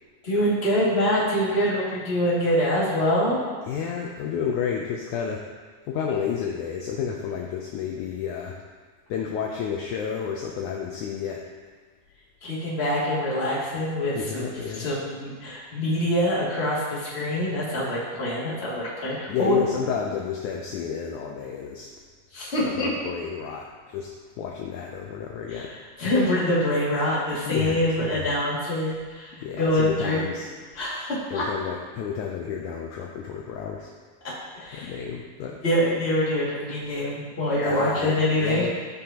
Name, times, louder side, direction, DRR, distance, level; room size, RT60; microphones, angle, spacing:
voice 1, 0.2-3.4 12.4-19.6 22.3-22.9 25.5-25.6 26.0-30.2 30.7-31.4 34.6-34.9 35.6-38.7, left 1 dB, 20° left, -8 dB, 1.9 m, -25 dB
voice 2, 3.6-5.4 5.9-8.6 9.1-11.5 14.2-14.9 19.3-21.9 22.6-25.8 27.4-28.3 29.3-30.5 31.3-33.9 34.7-35.6 37.6-38.7, left 7 dB, 80° left, 0 dB, 1.7 m, -31 dB
15.0 x 5.4 x 2.9 m, 1.5 s
omnidirectional pair, 4.2 m